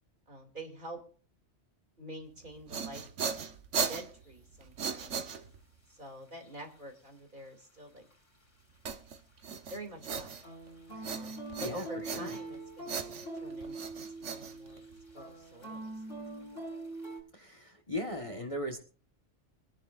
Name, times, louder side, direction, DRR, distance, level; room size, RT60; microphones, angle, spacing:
voice 1, 0.3-1.0 2.0-3.4 3.9-5.2 5.9-8.1 9.7-10.5 11.1-14.8 15.1-16.5, right 1 dB, 40° right, 2 dB, 2.8 m, -47 dB
sound 1, 2.4-5.8 8.9-10.7 11.0-12.6 12.9-15.1, right 6 dB, 75° right, 1.4 m, -37 dB
sound 2, 4.2-4.3 5.0-5.1 5.9-7.1 7.4-7.7 8.0-9.5 9.9-17.2, right 2 dB, 75° left, 6.3 m, -44 dB
voice 2, 10.9-11.3 11.6-12.4 17.3-18.8, left 1 dB, 25° left, 4 dB, 1.5 m, -39 dB
24.0 x 11.0 x 2.5 m, 0.40 s
omnidirectional pair, 1.3 m